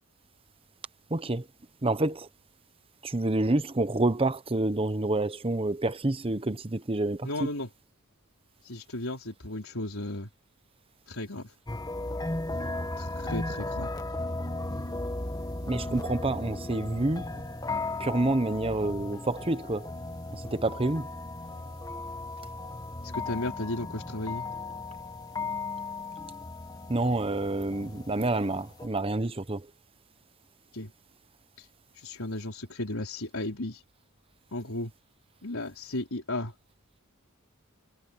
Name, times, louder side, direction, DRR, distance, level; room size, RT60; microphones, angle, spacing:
voice 1, 1.1-1.5 1.8-2.3 3.0-7.5 15.7-17.3 18.0-19.9 20.3-21.1 26.9-29.7, right 2 dB, 25° right, 0.8 m, -28 dB
voice 2, 7.2-7.7 8.7-10.3 11.1-11.5 13.0-13.9 23.0-24.4 30.7-30.9 32.0-33.8 34.5-34.9 35.4-36.5, left 1 dB, 75° left, 4.4 m, -34 dB
sound 1, 11.7-28.9, left 2 dB, 15° left, 1.6 m, -36 dB
head